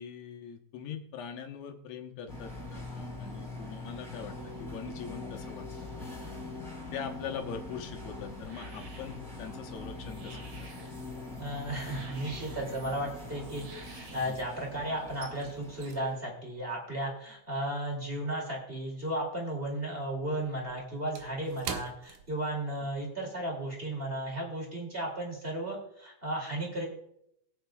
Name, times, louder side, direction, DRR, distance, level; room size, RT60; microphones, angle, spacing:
voice 1, 0.0-6.1 6.9-10.9 14.3-14.4, left 7 dB, 70° left, 4 dB, 2.1 m, -42 dB
sound 1, 2.3-16.1, left 2 dB, ahead, 4.3 m, -43 dB
sound 2, 7.6-14.4, right 3 dB, 50° right, 2.6 m, -53 dB
voice 2, 11.4-26.8, right 1 dB, 20° right, -1 dB, 2.3 m, -35 dB
sound 3, 13.8-14.5 14.7-19.4 19.7-23.0 23.3-23.5 24.0-24.2, right 7 dB, 80° right, 2.2 m, -46 dB
22.5 x 8.0 x 2.3 m, 0.76 s
omnidirectional pair, 3.4 m